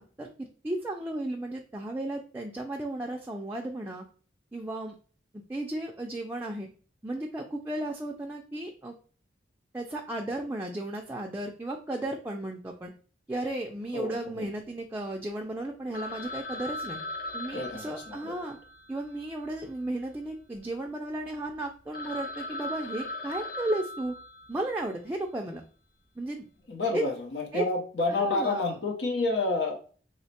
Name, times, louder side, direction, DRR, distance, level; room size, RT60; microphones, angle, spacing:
voice 1, 0.0-4.0 4.5-4.9 5.3-6.7 7.0-8.9 9.7-12.9 13.3-17.0 17.3-18.6 18.9-24.2 24.5-25.6 26.2-26.4 26.9-27.0 27.5-27.6 28.1-28.8, right 1 dB, 10° right, 1 dB, 0.3 m, -34 dB
voice 2, 13.9-14.5 17.5-18.3 26.7-29.9, left 3 dB, 85° left, 1 dB, 0.8 m, -29 dB
Telephone, 15.9-20.3 20.5-20.6 21.2-21.3 21.6-21.7 21.9-24.9, left 2 dB, 60° left, 0.5 m, -39 dB
3.1 x 2.1 x 4.2 m, 0.41 s
head